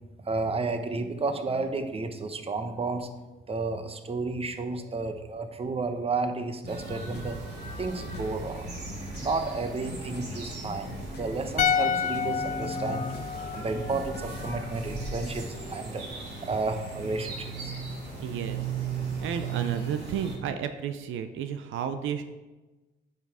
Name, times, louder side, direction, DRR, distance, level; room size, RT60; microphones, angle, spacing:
voice 1, 0.2-3.1 3.5-7.4 7.8-8.7 9.2-13.1 13.5-16.0 16.4-17.7, right 3 dB, 30° right, 7 dB, 1.0 m, -32 dB
sound 1, 6.6-14.6, left 3 dB, 55° left, 1.0 m, -44 dB
sound 2, 6.7-20.4, right 4 dB, 55° right, 3.0 m, -37 dB
sound 3, 11.6-14.8 15.1-15.2, left 7 dB, 40° left, 0.4 m, -30 dB
voice 2, 18.2-18.7 19.2-22.2, right 8 dB, 80° right, 9 dB, 0.6 m, -32 dB
9.1 x 5.8 x 4.8 m, 1.1 s
cardioid pair, 90°, 20 cm